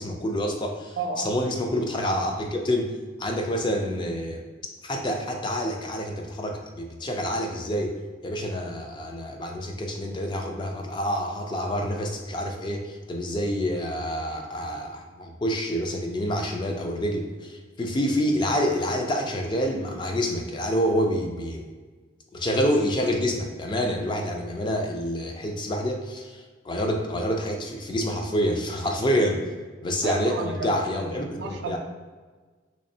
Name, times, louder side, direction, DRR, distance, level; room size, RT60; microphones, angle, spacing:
voice 1, 0.0-2.9 3.2-4.4 4.8-7.9 8.2-21.6 22.3-29.4 29.8-31.8, equal, 25° left, 2 dB, 0.3 m, -27 dB
voice 2, 1.0-1.3 30.0-31.1 31.4-31.8, right 3 dB, 55° right, 3 dB, 0.3 m, -32 dB
3.5 x 3.0 x 2.7 m, 1.4 s
head